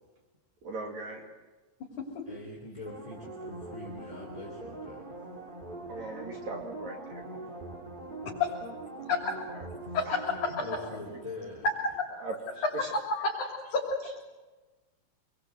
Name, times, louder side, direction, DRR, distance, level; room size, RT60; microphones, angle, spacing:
voice 1, 0.6-1.2 5.9-7.2 9.5-9.7 10.1-10.2 10.8-11.0 12.2-12.4 12.7-12.9 14.0-14.1, right 2 dB, 55° right, 2 dB, 3.6 m, -39 dB
voice 2, 2.3-5.0 10.5-11.7, left 2 dB, 10° left, -3 dB, 3.4 m, -43 dB
sound 1, 2.9-12.2 12.6-12.7, right 2 dB, 15° right, 2.4 m, -43 dB
voice 3, 9.9-10.7 11.8-11.9 13.1-13.8, left 3 dB, 60° left, -2 dB, 4.6 m, -30 dB
26.0 x 22.0 x 7.9 m, 1.2 s
omnidirectional pair, 4.0 m